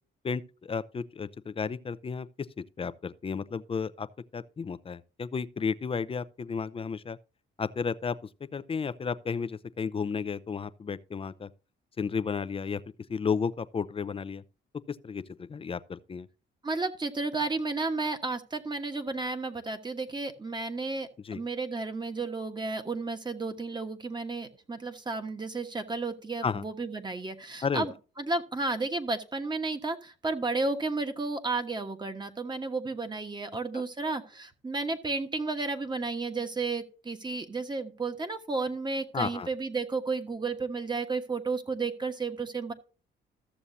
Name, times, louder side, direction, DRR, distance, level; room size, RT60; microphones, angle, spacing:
voice 1, 0.2-2.3 2.6-4.1 4.3-7.2 7.6-8.2 8.5-11.5 12.0-12.8 13.1-14.4 14.9-16.3 21.2-21.4 26.4-26.6 27.6-27.9 33.7-33.8 39.1-39.5, left 5 dB, 30° left, 0.5 m, -33 dB
voice 2, 16.6-42.7, right 3 dB, 20° right, 1.3 m, -32 dB
14.0 x 7.1 x 2.7 m
cardioid pair, 90°, 20 cm